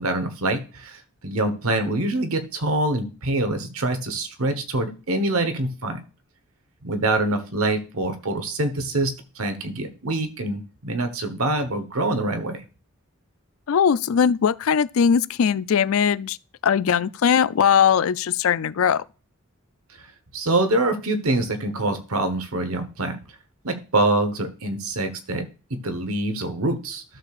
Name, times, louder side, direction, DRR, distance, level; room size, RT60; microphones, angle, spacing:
voice 1, 0.0-6.0 6.8-12.6 20.3-23.2 23.6-27.0, right 2 dB, 80° right, 1.2 m, -25 dB
voice 2, 13.7-16.4 16.6-19.0, left 7 dB, 75° left, 0.4 m, -20 dB
13.0 x 6.7 x 2.5 m
head